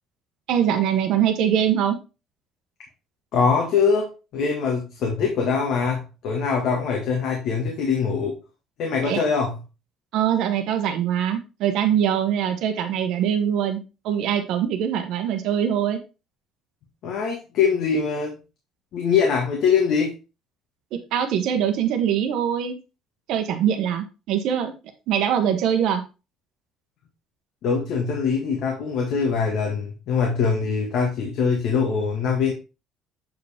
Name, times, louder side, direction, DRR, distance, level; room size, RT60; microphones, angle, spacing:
voice 1, 0.5-2.0 9.0-9.2 10.1-13.8 14.0-16.0 20.9-22.7 23.3-24.7 25.1-26.0, right 9 dB, 60° right, 6 dB, 1.0 m, -23 dB
voice 2, 3.3-8.4 8.8-9.6 17.0-18.4 18.9-20.1 27.6-32.5, left 5 dB, 55° left, 0 dB, 1.7 m, -23 dB
7.9 x 4.7 x 3.5 m, 0.30 s
cardioid pair, 175°, 0 cm